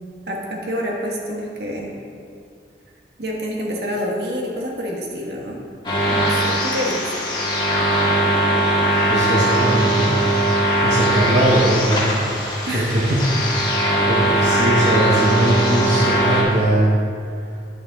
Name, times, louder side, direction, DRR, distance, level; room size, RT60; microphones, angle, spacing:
voice 1, 0.3-1.9 3.2-5.6 6.1-7.1 12.7-12.9, equal, 70° right, -1 dB, 1.3 m, -27 dB
sound 1, 5.8-16.4, right 1 dB, 25° left, 1.5 m, -20 dB
voice 2, 9.1-12.2 12.7-13.3 14.1-16.9, right 1 dB, 40° right, -4 dB, 0.9 m, -20 dB
10.5 x 5.3 x 4.0 m, 2.3 s
head